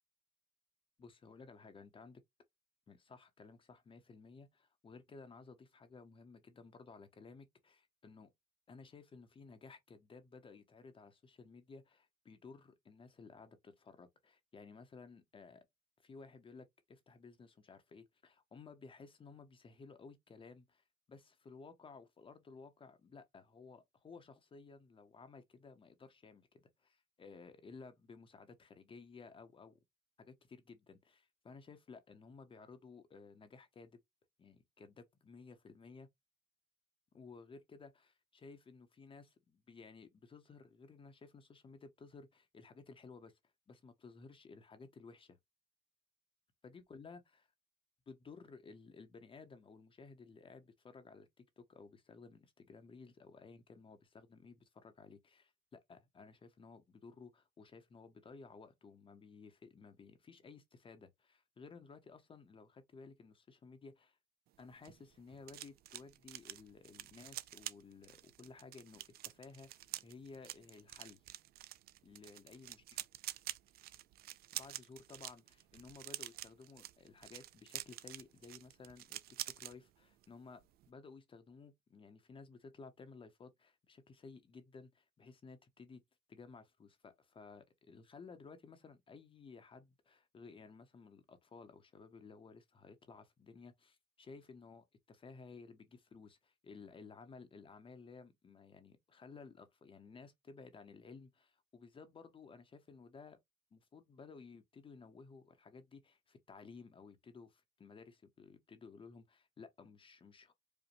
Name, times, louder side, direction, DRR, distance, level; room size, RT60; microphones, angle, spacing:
voice 1, 1.0-2.2 2.9-8.3 8.7-15.7 16.0-29.8 30.2-34.0 34.4-36.1 37.1-43.4 43.7-45.4 46.6-47.5 48.1-64.2 64.6-71.2 72.0-72.8 74.5-79.2 79.5-86.0 86.3-103.4 103.7-110.5, left 4 dB, 30° left, 0.8 m, -56 dB
sound 1, 64.5-79.7 80.1-80.3 80.6-80.9, right 14 dB, 65° right, 0.4 m, -48 dB
5.1 x 2.1 x 3.0 m
cardioid pair, 110°, 17 cm